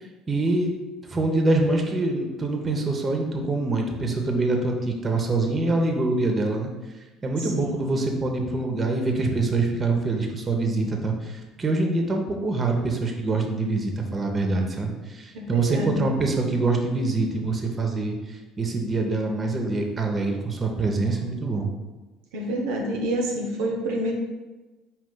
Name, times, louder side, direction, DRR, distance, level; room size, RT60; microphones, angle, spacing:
voice 1, 0.3-0.7 1.0-6.7 7.2-21.7, right 2 dB, 30° right, 2 dB, 0.7 m, -25 dB
voice 2, 7.4-7.8 15.3-16.0 22.3-24.1, right 1 dB, 70° right, -1 dB, 0.5 m, -28 dB
4.9 x 2.4 x 3.7 m, 1.2 s
figure-of-eight pair, 55°, 0 cm